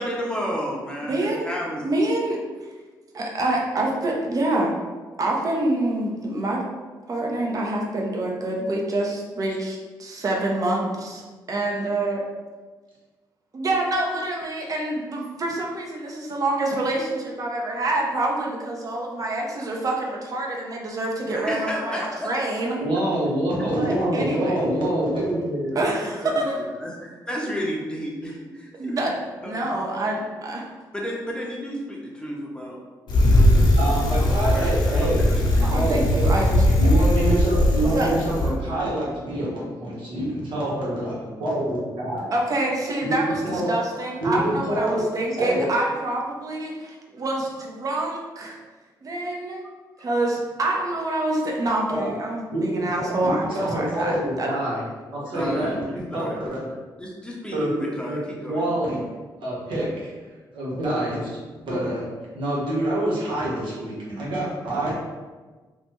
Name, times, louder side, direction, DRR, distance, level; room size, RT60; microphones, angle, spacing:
voice 1, 0.0-1.8 21.2-22.4 25.7-29.1 29.4-29.6 30.9-32.8 33.1-35.9 38.3-38.8 55.3-55.8 56.1-56.4 57.0-58.6, equal, 10° left, -3 dB, 0.6 m, -32 dB
voice 2, 1.0-1.5 1.8-2.7 3.1-4.7 5.2-6.6 7.1-11.2 11.5-12.2 13.5-22.8 23.7-24.6 25.7-26.5 28.8-29.1 29.4-30.6 35.6-37.0 37.8-38.1 42.3-48.6 49.0-49.6 50.0-54.5, right 2 dB, 45° right, -1 dB, 0.7 m, -26 dB
voice 3, 22.8-25.8 33.8-35.3 35.7-36.0 36.8-42.3 43.0-43.2 43.4-43.7 44.2-45.0 45.4-45.6 47.1-47.2 51.9-52.1 52.5-54.8 55.1-55.8 56.1-56.7 57.5-57.7 58.0-58.2 58.5-59.0 59.4-60.1 60.5-61.3 61.6-62.1 62.3-64.9, right 1 dB, 75° right, -5 dB, 1.0 m, -26 dB
Bicycle, 33.1-38.5, left 1 dB, 60° left, 0.6 m, -19 dB
3.1 x 2.1 x 3.0 m, 1.3 s
cardioid pair, 75°, 8 cm